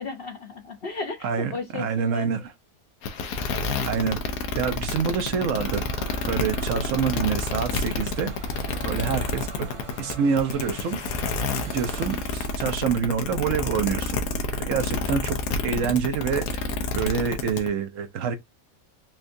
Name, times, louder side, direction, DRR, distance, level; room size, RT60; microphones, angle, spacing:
voice 1, 0.0-2.3, left 4 dB, 50° left, 0.9 m, -34 dB
voice 2, 1.2-2.5 3.8-4.2 4.5-5.8 6.2-8.3 8.8-9.7 10.0-11.0 11.7-14.2 14.6-15.4 15.6-16.6 16.9-18.4, right 6 dB, 70° right, 0.9 m, -26 dB
sound 1, 3.0-17.7, left 4 dB, 80° left, 1.2 m, -29 dB
sound 2, 5.0-12.7, right 3 dB, 50° right, 0.3 m, -42 dB
4.4 x 2.4 x 2.5 m
omnidirectional pair, 1.5 m